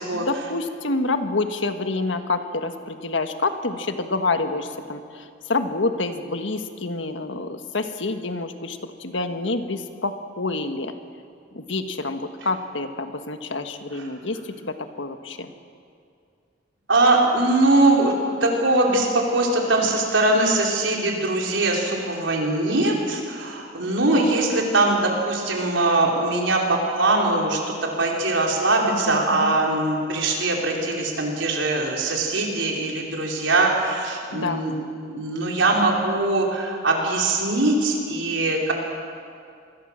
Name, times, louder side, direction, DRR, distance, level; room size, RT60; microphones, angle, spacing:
voice 1, 0.1-10.9 11.5-15.5 28.9-29.6 34.3-34.6, left 3 dB, 80° left, 7 dB, 1.6 m, -27 dB
voice 2, 16.9-18.1 18.4-27.6 28.0-34.7 35.0-38.7, right 2 dB, 80° right, 0 dB, 4.8 m, -21 dB
27.0 x 20.5 x 7.6 m, 2.4 s
head